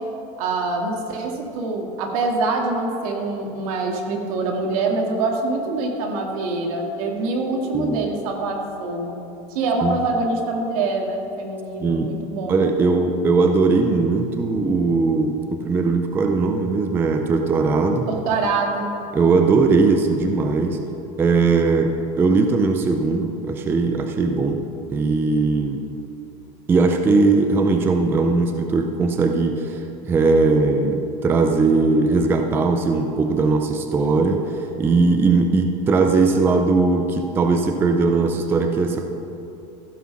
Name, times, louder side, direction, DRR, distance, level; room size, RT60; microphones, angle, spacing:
voice 1, 0.4-9.2 9.5-12.5 18.1-18.9, right 3 dB, 75° right, 1 dB, 2.0 m, -25 dB
voice 2, 11.8-12.1 12.5-18.1 19.1-20.8 21.2-24.6 24.9-25.8 26.7-39.1, right 3 dB, 10° right, 5 dB, 0.4 m, -19 dB
15.0 x 6.1 x 5.9 m, 2.8 s
cardioid pair, 175°, 18 cm